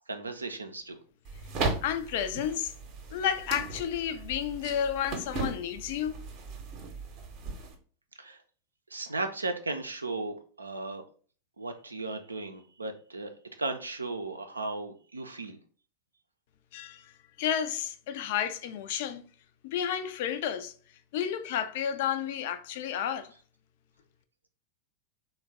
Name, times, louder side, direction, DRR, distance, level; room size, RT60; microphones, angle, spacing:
voice 1, 0.1-1.0 8.2-8.4 8.9-11.0 11.6-13.3 13.6-15.6, right 3 dB, 80° right, 0.4 m, -36 dB
sound 1, 1.2-7.8, right 3 dB, 40° right, 0.7 m, -37 dB
voice 2, 1.8-2.7 3.1-6.2 16.7-17.1 17.4-19.2 19.6-20.7 21.1-23.3, left 9 dB, 50° left, 0.4 m, -31 dB
3.2 x 2.2 x 3.5 m
figure-of-eight pair, 90°, 0 cm